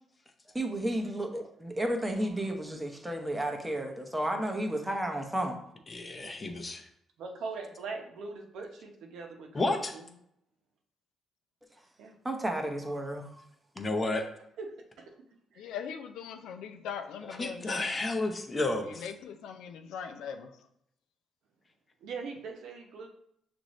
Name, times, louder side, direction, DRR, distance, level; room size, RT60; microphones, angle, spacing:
voice 1, 0.5-5.6 12.2-13.4, right 1 dB, 15° right, 4 dB, 0.8 m, -32 dB
voice 2, 5.9-6.9 9.5-9.9 13.8-14.3 17.4-19.1, left 2 dB, 30° left, 5 dB, 0.7 m, -31 dB
voice 3, 7.2-10.1 12.0-12.1 14.6-14.7 15.0-15.1 15.5-15.7 22.0-23.1, right 4 dB, 80° right, 2 dB, 0.8 m, -41 dB
voice 4, 15.6-18.0 18.8-20.5, left 7 dB, 85° left, 6 dB, 0.4 m, -41 dB
6.2 x 2.6 x 3.1 m, 0.73 s
cardioid pair, 90°, 0 cm